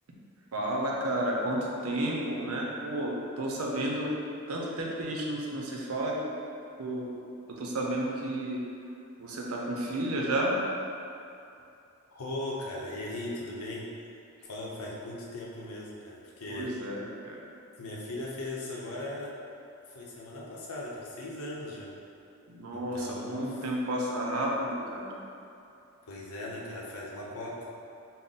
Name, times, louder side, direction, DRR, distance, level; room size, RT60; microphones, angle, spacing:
voice 1, 0.5-4.2 4.5-6.3 6.8-7.2 7.5-8.6 9.2-10.6 16.5-17.4 22.5-25.2, right 1 dB, 80° right, -2 dB, 0.6 m, -32 dB
voice 2, 12.1-13.9 14.4-16.7 17.7-19.4 19.8-22.0 22.7-23.4 26.1-27.7, left 1 dB, 85° left, -4 dB, 0.7 m, -38 dB
3.6 x 2.1 x 4.0 m, 2.6 s
head